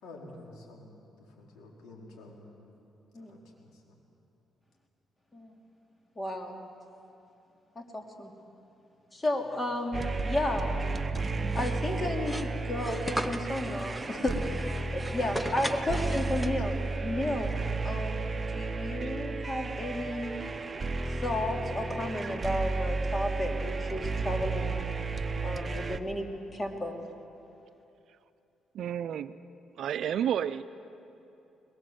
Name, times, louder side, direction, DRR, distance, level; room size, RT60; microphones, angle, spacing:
voice 1, 0.0-0.9 1.3-2.7 3.1-4.0 14.6-14.9 15.2-15.6, left 2 dB, 85° left, -1 dB, 4.4 m, -50 dB
voice 2, 6.2-6.5 7.7-8.3 9.1-16.7 17.0-17.5 17.8-18.2 18.5-20.3 21.2-24.8 25.4-27.0, left 1 dB, 25° left, 2 dB, 2.9 m, -33 dB
sound 1, 9.9-26.0, right 3 dB, 25° right, 0.9 m, -33 dB
sound 2, 11.5-16.9, equal, ahead, 0.9 m, -38 dB
voice 3, 28.7-29.4 29.8-30.6, right 9 dB, 70° right, 12 dB, 0.5 m, -31 dB
21.5 x 21.5 x 7.9 m, 2.8 s
cardioid pair, 90°, 0 cm